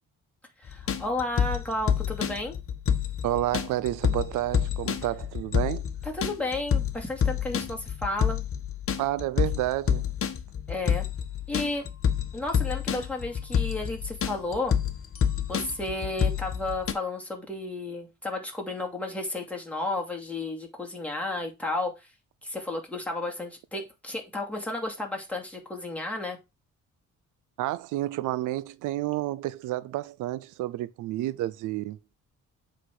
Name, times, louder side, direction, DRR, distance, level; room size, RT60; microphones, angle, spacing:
voice 1, 0.6-2.6 6.0-8.4 10.7-11.1 11.5-11.8 12.3-14.8 15.5-22.1 22.4-26.4, left 2 dB, 5° left, 2.6 m, -32 dB
sound 1, 0.7-16.9, left 8 dB, 45° left, 1.2 m, -28 dB
voice 2, 3.2-5.9 9.0-10.1 27.6-32.0, right 15 dB, 85° right, 0.5 m, -30 dB
8.1 x 4.0 x 4.8 m
cardioid pair, 90°, 30 cm